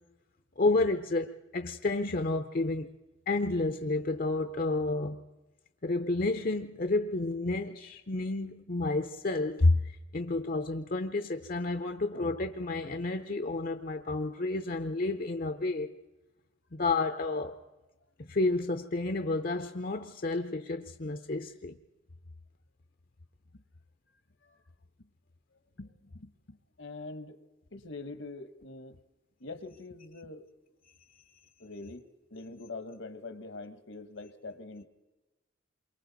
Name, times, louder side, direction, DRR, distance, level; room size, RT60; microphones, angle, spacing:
voice 1, 0.6-2.9 3.3-5.2 5.8-15.9 16.7-17.6 18.2-21.7 31.1-31.2, left 2 dB, 45° left, 0.7 m, -30 dB
voice 2, 25.8-27.4 27.7-29.0 29.4-30.4 31.6-32.0 32.3-34.9, left 3 dB, 70° left, 1.2 m, -44 dB
28.0 x 23.0 x 4.0 m
head